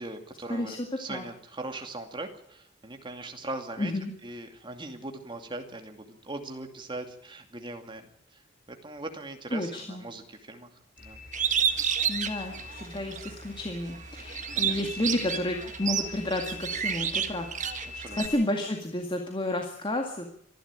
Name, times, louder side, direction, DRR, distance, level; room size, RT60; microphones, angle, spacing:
voice 1, 0.0-3.9 4.2-11.2 14.6-14.8 17.9-18.4, right 2 dB, 25° right, 5 dB, 2.5 m, -40 dB
voice 2, 3.8-4.1 9.5-10.0 12.1-17.7 18.2-20.3, left 1 dB, 25° left, 3 dB, 2.1 m, -31 dB
sound 1, 11.0-18.4, left 4 dB, 50° left, 4.5 m, -43 dB
Bird, 11.3-13.3 13.8-18.3, right 8 dB, 40° right, 1.5 m, -30 dB
25.5 x 12.0 x 8.9 m, 0.69 s
head